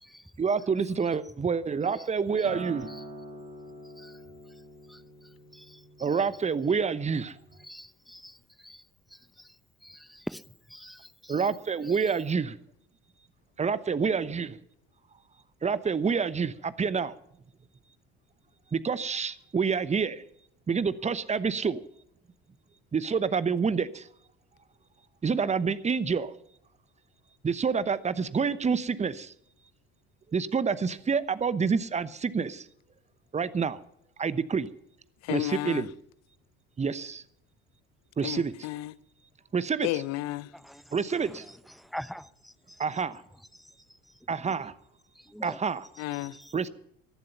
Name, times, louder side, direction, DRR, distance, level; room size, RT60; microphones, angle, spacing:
voice 1, 0.4-2.9 6.0-7.3 11.3-12.5 13.6-14.6 15.6-17.1 18.7-20.2 20.7-21.8 22.9-24.1 25.2-26.3 27.4-29.3 30.3-32.6 33.3-33.8 34.2-34.7 35.3-35.9 36.8-37.2 38.2-38.5 39.5-40.0 40.9-41.4 42.8-43.2 44.3-44.7 45.4-45.9 46.5-46.7, right 5 dB, 20° right, 0.9 m, -28 dB
Acoustic guitar, 2.4-6.9 7.3-7.6, right 1 dB, 65° right, 5.5 m, -45 dB
voice 2, 7.6-8.4 8.6-8.8 9.4-9.5 9.8-10.4 10.7-11.3 40.5-40.8 41.1-41.4 41.8-42.5 45.3-45.6 46.3-46.5, equal, ahead, 0.7 m, -43 dB
voice 3, 35.3-35.9 38.2-38.9 39.8-40.5 46.0-46.3, left 16 dB, 55° left, 0.7 m, -32 dB
15.5 x 12.0 x 5.7 m
figure-of-eight pair, 55°, 31 cm